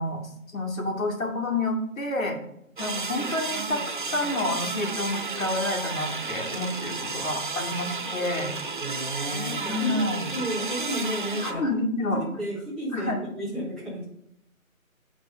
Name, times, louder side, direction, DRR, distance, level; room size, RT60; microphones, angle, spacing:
voice 1, 0.0-2.4 2.8-3.8 4.1-8.5 9.6-10.3 11.4-12.2 12.9-13.2, left 2 dB, 70° left, 1 dB, 2.4 m, -29 dB
sound 1, 2.8-11.5, right 4 dB, 35° right, 0.6 m, -32 dB
voice 2, 8.8-10.0 10.3-11.6 12.1-14.0, equal, ahead, -10 dB, 1.1 m, -32 dB
8.9 x 4.5 x 5.1 m, 0.78 s
figure-of-eight pair, 160°, 43 cm